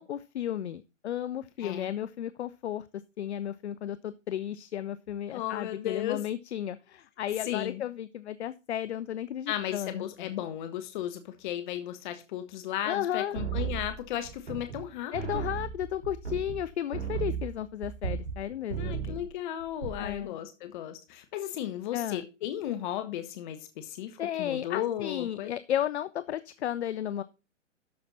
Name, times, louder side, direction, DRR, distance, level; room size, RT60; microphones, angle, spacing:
voice 1, 0.0-2.9 3.2-10.3 12.9-13.4 15.1-19.3 20.0-20.4 21.9-22.2 24.2-27.2, left 11 dB, 65° left, 0.6 m, -34 dB
voice 2, 1.6-1.9 5.3-6.2 7.4-7.8 9.5-15.4 18.8-25.5, left 11 dB, 40° left, 1.2 m, -35 dB
sound 1, 13.3-14.9 15.1-18.4 18.7-19.3 19.6-20.2, right 7 dB, 55° right, 4.8 m, -35 dB
13.0 x 5.8 x 4.1 m
figure-of-eight pair, 125°, 37 cm